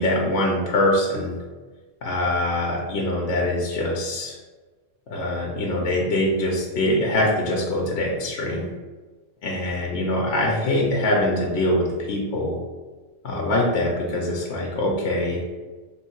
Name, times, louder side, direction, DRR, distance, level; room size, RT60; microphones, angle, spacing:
voice 1, 0.0-1.3 2.0-4.4 5.1-8.7 9.4-12.6 13.2-15.4, left 1 dB, 65° left, -2 dB, 0.9 m, -23 dB
3.3 x 2.7 x 4.4 m, 1.3 s
omnidirectional pair, 1.3 m